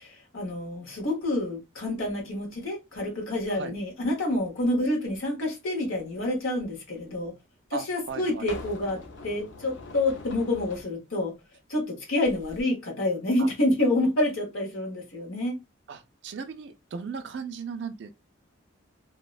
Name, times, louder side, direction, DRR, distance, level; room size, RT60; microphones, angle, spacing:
voice 1, 0.0-7.3 7.7-11.3 11.7-15.6, left 1 dB, 85° left, 1.0 m, -28 dB
sound 1, 7.0-7.1 8.1-10.9 12.2-12.6, left 2 dB, 65° left, 0.5 m, -43 dB
voice 2, 7.7-8.4 13.4-13.5 15.9-18.1, right 5 dB, 55° right, 0.3 m, -37 dB
2.6 x 2.1 x 2.3 m
head